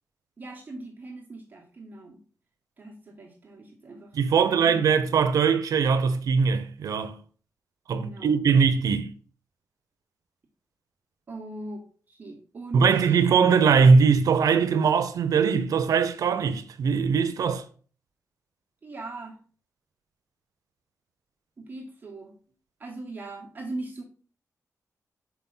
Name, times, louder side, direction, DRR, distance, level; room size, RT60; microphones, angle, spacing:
voice 1, 0.4-2.2 2.8-4.8 7.9-8.4 11.3-13.1 18.8-19.4 21.6-22.3 22.8-24.0, right 2 dB, 30° right, 1.1 m, -40 dB
voice 2, 4.1-7.2 7.9-9.1 12.7-17.6, right 5 dB, 80° right, 0.7 m, -21 dB
5.8 x 4.3 x 3.9 m
wide cardioid pair, 180°, 6 cm